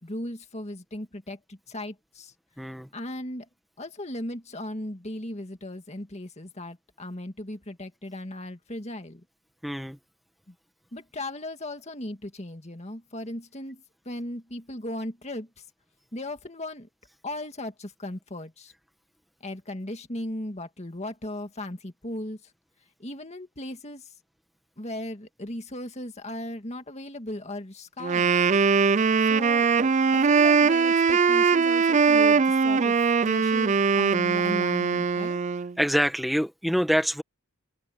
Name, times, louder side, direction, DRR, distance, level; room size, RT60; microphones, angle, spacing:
voice 1, 0.0-2.3 2.9-3.5 3.8-9.2 10.5-10.6 10.9-15.6 16.1-16.9 17.2-18.7 19.4-22.4 23.0-24.1 24.8-28.5 29.2-29.7 30.1-35.4, left 1 dB, 30° left, 2.1 m, -37 dB
voice 2, 2.6-2.9 9.6-10.0 35.8-37.2, equal, ahead, 1.3 m, -25 dB
Wind instrument woodwind instrument, 28.0-35.7, right 5 dB, 30° right, 0.4 m, -21 dB
open air
head